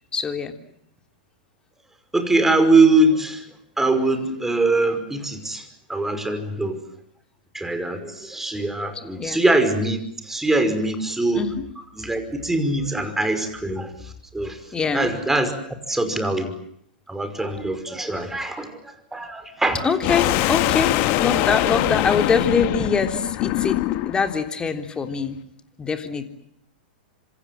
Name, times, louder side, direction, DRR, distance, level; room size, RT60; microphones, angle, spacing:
voice 1, 0.1-0.5 9.2-9.4 11.3-11.6 14.7-15.1 19.8-23.8 24.1-25.4 25.8-26.2, left 5 dB, 15° left, 6 dB, 3.5 m, -23 dB
voice 2, 2.1-3.4 3.8-5.6 5.9-6.8 7.5-11.5 12.0-14.6 14.9-15.5 15.9-16.5 17.1-18.7 19.1-19.8, right 2 dB, 5° right, 8 dB, 5.4 m, -22 dB
sound 1, 20.0-24.3, left 16 dB, 45° left, 1.7 m, -22 dB
27.5 x 26.5 x 7.8 m, 0.71 s
hypercardioid pair, 110°, 5 cm